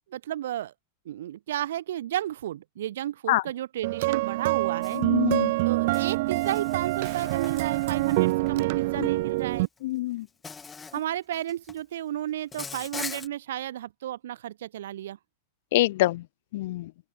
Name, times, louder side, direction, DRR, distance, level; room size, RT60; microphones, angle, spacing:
voice 1, 0.1-0.7 1.0-5.0 5.6-9.7 10.9-15.2, right 12 dB, 80° right, 1.3 m, -33 dB
sound 1, 3.8-9.7, right 21 dB, 50° right, 1.7 m, -26 dB
Insect, 4.8-5.0 5.9-8.5 9.6-9.8 10.4-11.0 11.3-11.8 12.5-13.3, left 5 dB, 10° left, 2.1 m, -41 dB
voice 2, 4.9-5.5 9.0-9.1 9.8-10.3 15.7-16.2 16.5-16.9, left 17 dB, 60° left, 0.4 m, -25 dB
open air
supercardioid pair, 160°, 0 cm